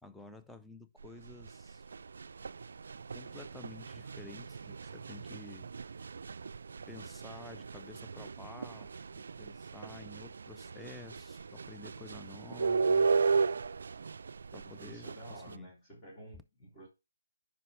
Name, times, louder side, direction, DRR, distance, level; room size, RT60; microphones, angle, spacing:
voice 1, 0.0-1.9 3.1-5.7 6.9-13.1 14.5-15.7, left 2 dB, ahead, 0.5 m, -51 dB
sound 1, 1.0-15.5, right 4 dB, 60° right, 0.3 m, -36 dB
voice 2, 14.6-16.9, equal, 20° left, 2.4 m, -51 dB
9.7 x 5.3 x 3.1 m
figure-of-eight pair, 155°, 0 cm